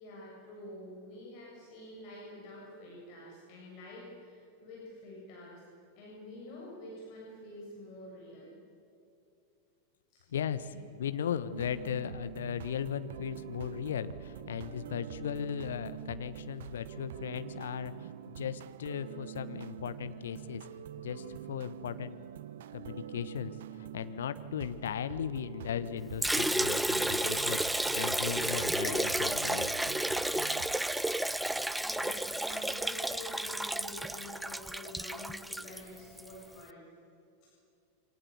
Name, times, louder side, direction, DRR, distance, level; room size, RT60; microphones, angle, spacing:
voice 1, 0.0-5.6 6.0-8.5 10.1-10.2 10.6-10.8 31.8-36.8 37.4-37.5, left 1 dB, 45° left, -3 dB, 7.5 m, -48 dB
voice 2, 10.3-20.6 21.0-22.2 22.7-29.7, left 9 dB, 65° left, 12 dB, 1.2 m, -37 dB
sound 1, 11.5-30.8, right 11 dB, 60° right, 0.6 m, -45 dB
Liquid, 26.2-36.3, right 1 dB, 5° right, 0.6 m, -32 dB
27.5 x 24.5 x 8.1 m, 2.6 s
figure-of-eight pair, 90°, 0 cm